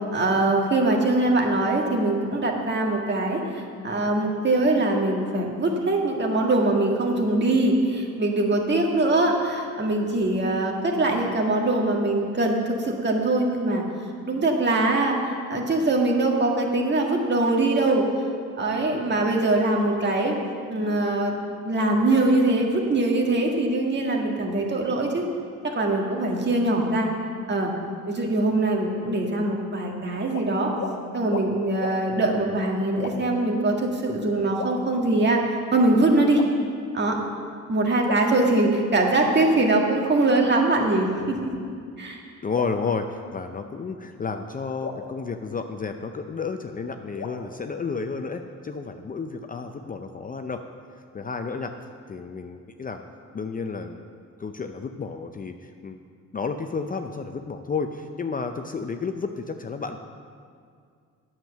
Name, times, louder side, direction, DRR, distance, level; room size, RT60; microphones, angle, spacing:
voice 1, 0.1-13.8 14.3-18.1 18.6-20.4 20.7-21.3 21.6-25.2 25.6-27.1 27.5-27.7 28.1-30.7 31.1-35.4 35.7-36.4 36.9-37.2 37.7-41.5 42.0-42.2, right 2 dB, 35° right, 0 dB, 1.8 m, -22 dB
sound 1, 30.3-30.5 30.8-31.0 31.3-31.5 31.8-32.0 33.0-33.4 34.5-35.4 36.3-37.0 38.0-39.0 40.3-41.4 42.5-43.7 44.8-46.2 47.1-48.4, left 4 dB, 50° left, 1.1 m, -38 dB
voice 2, 42.4-50.6 50.9-51.7 52.1-53.0 53.3-54.0 54.4-56.0 56.3-60.0, left 5 dB, 30° left, 6 dB, 0.5 m, -31 dB
9.1 x 7.5 x 6.6 m, 2.2 s
cardioid pair, 90°, 30 cm